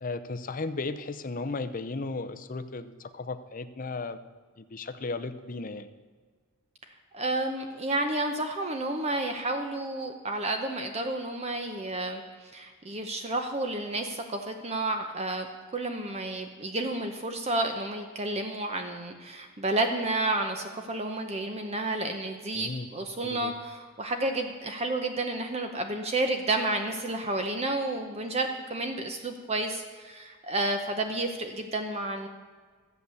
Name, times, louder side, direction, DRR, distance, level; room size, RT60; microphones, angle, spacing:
voice 1, 0.0-4.2 4.6-5.9 22.6-22.9 23.2-23.5, left 3 dB, 40° left, 10 dB, 0.6 m, -35 dB
voice 2, 7.1-15.5 15.7-32.3, right 2 dB, 30° right, 5 dB, 0.8 m, -31 dB
13.0 x 8.2 x 6.9 m, 1.5 s
head